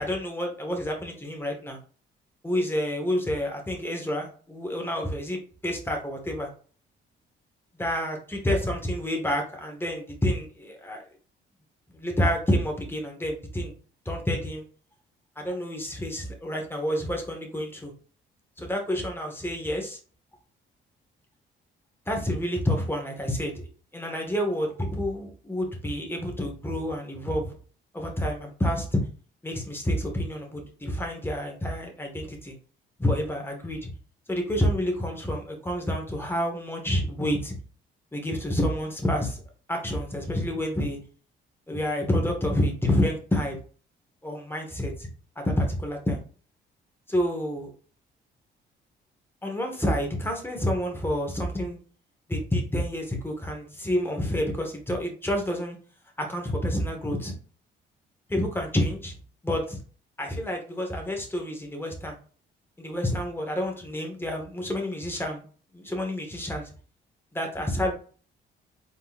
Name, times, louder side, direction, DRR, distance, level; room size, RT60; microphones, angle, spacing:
voice 1, 0.0-1.8 2.4-6.5 7.8-11.0 11.9-13.7 14.0-14.6 15.4-17.9 18.6-20.0 22.1-23.5 23.9-27.5 27.9-29.0 29.4-32.5 33.0-33.9 34.3-37.5 38.1-39.4 39.7-41.0 41.7-43.6 44.2-45.1 45.3-46.2 47.1-47.7 49.4-51.8 52.3-55.8 56.3-57.3 58.3-59.2 59.4-59.8 60.2-62.1 62.8-65.4 65.7-66.6 67.3-67.9, equal, 10° left, 2 dB, 1.6 m, -28 dB
4.4 x 3.9 x 2.5 m, 0.40 s
cardioid pair, 90°, 20 cm